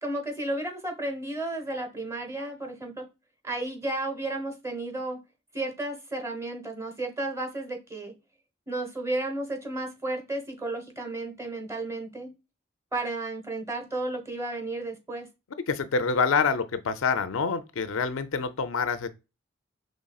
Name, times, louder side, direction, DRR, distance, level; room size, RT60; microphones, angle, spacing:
voice 1, 0.0-3.1 3.4-5.2 5.5-8.1 8.7-12.3 12.9-15.3, right 2 dB, 15° right, 1.0 m, -33 dB
voice 2, 15.7-19.1, left 5 dB, 80° left, 0.5 m, -26 dB
5.2 x 3.2 x 2.3 m
head